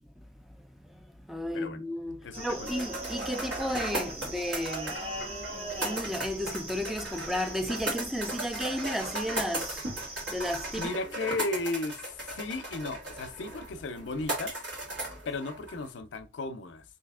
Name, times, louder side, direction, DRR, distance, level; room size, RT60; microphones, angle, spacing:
voice 1, 0.2-5.3 5.8-10.9, equal, ahead, 0.3 m, -34 dB
voice 2, 2.2-2.7 10.7-14.6 15.3-17.0, left 3 dB, 65° left, 0.5 m, -35 dB
sound 1, 2.3-10.9, right 1 dB, 30° right, 0.7 m, -40 dB
sound 2, 2.7-15.9, right 1 dB, 65° right, 1.7 m, -37 dB
3.3 x 2.7 x 3.5 m
head